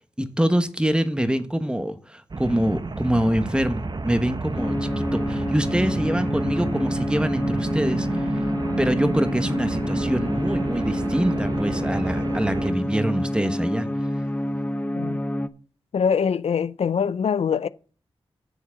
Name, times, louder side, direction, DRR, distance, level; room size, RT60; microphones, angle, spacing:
voice 1, 0.2-8.3 8.8-13.9, equal, 10° right, 1.1 m, -25 dB
sound 1, 2.3-12.7, right 3 dB, 45° right, 0.9 m, -30 dB
sound 2, 4.5-15.5, left 1 dB, 15° left, 0.7 m, -27 dB
voice 2, 15.9-17.7, left 6 dB, 75° left, 0.4 m, -23 dB
7.3 x 6.7 x 7.0 m
wide cardioid pair, 65°, 10 cm